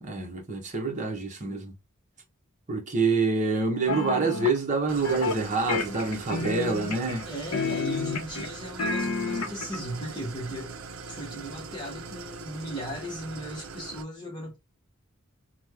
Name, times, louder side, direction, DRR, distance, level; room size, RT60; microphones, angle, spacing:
voice 1, 0.0-1.7 2.7-7.2, right 3 dB, 35° right, 0.9 m, -27 dB
sound 1, 3.9-4.6 5.0-5.4 5.7-7.2 7.5-8.5 8.8-9.8, left 4 dB, 80° left, 0.6 m, -30 dB
Idling, 4.9-14.0, right 5 dB, 70° right, 0.5 m, -41 dB
voice 2, 7.2-10.8 11.1-14.6, right 1 dB, 20° left, 0.8 m, -37 dB
3.1 x 2.1 x 3.4 m
head